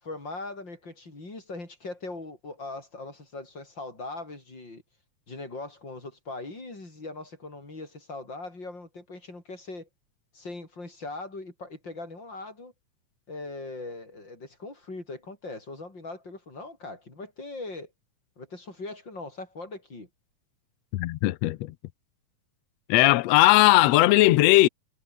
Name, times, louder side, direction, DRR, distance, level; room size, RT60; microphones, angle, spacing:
voice 1, 0.0-4.8 5.3-9.9 10.3-12.7 13.3-17.9 18.4-20.1 23.1-23.2, left 2 dB, 30° left, 7.4 m, -40 dB
voice 2, 20.9-21.7 22.9-24.7, left 18 dB, 85° left, 1.5 m, -18 dB
omnidirectional pair, 3.8 m